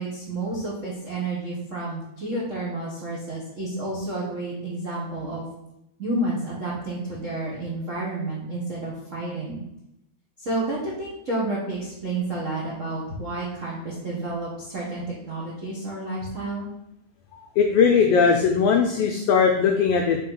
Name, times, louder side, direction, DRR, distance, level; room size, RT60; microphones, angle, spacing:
voice 1, 0.0-5.5 6.0-9.6 10.4-16.7, right 2 dB, 65° right, -5 dB, 0.7 m, -30 dB
voice 2, 17.6-20.2, left 6 dB, 85° left, 3 dB, 1.3 m, -19 dB
4.3 x 4.2 x 5.4 m, 0.84 s
omnidirectional pair, 3.4 m